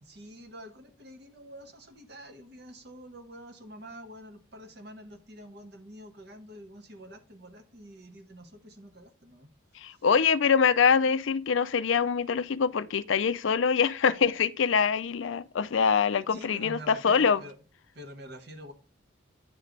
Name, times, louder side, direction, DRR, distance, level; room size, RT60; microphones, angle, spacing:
voice 1, 0.0-9.5 9.9-10.0 16.3-17.6 17.9-18.7, equal, 55° right, 1.1 m, -47 dB
voice 2, 9.8-17.4, left 6 dB, 70° left, 0.4 m, -24 dB
9.6 x 3.3 x 5.1 m
head